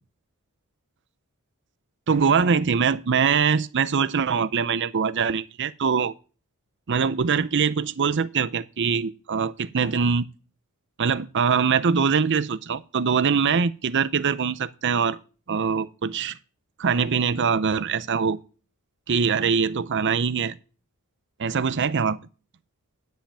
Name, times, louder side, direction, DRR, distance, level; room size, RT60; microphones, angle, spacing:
voice 1, 2.1-6.1 6.9-10.3 11.0-15.2 15.5-16.4 16.8-18.4 19.1-20.6 21.4-22.2, right 6 dB, 55° right, 0.6 m, -23 dB
10.0 x 5.7 x 8.4 m
head